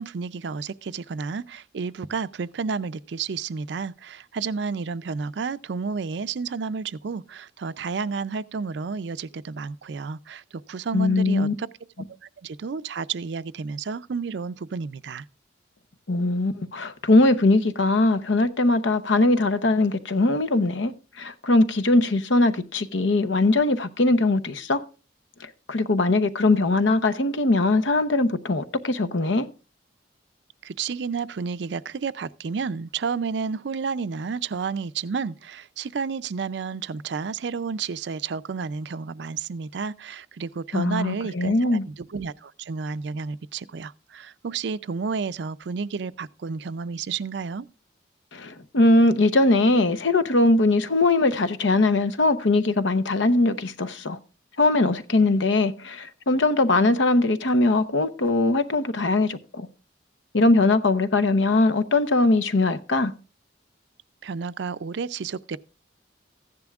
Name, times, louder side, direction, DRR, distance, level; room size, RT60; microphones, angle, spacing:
voice 1, 0.0-10.4 10.7-11.7 12.2-15.2 30.6-47.7 64.2-65.6, right 5 dB, 70° right, 0.4 m, -31 dB
voice 2, 10.9-11.5 16.1-20.9 21.2-24.8 25.4-29.5 40.7-41.8 48.3-54.2 54.6-59.7 60.3-63.1, left 2 dB, 80° left, 0.8 m, -21 dB
15.0 x 10.5 x 2.4 m
head